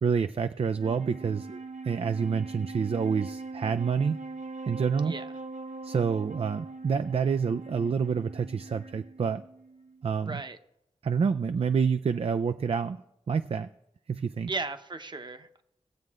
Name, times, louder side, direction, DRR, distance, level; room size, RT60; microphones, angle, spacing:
voice 1, 0.0-4.2 4.7-5.1 5.8-9.4 10.0-10.4 11.0-13.0 13.3-13.7 14.1-14.5, right 6 dB, 55° right, 10 dB, 0.4 m, -28 dB
Wind instrument woodwind instrument, 0.6-10.1, right 3 dB, 90° right, 0.7 m, -42 dB
voice 2, 10.3-10.6 14.5-15.6, right 3 dB, 40° right, 8 dB, 0.9 m, -36 dB
19.0 x 7.7 x 3.6 m, 0.79 s
wide cardioid pair, 100°, 12 cm